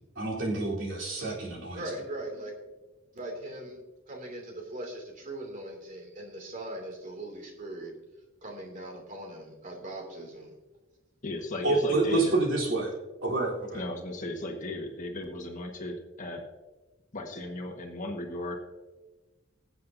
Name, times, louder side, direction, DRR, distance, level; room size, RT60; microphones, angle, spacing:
voice 1, 0.2-1.8 11.6-12.9 13.2-13.8, right 2 dB, 70° right, -4 dB, 3.8 m, -28 dB
voice 2, 1.7-2.5 3.1-3.8 4.1-7.9 8.4-10.5, right 1 dB, 40° right, 1 dB, 2.7 m, -40 dB
voice 3, 11.2-12.3 13.7-16.4 17.1-18.6, left 1 dB, 40° left, 2 dB, 1.5 m, -36 dB
22.5 x 7.7 x 2.7 m, 1.2 s
head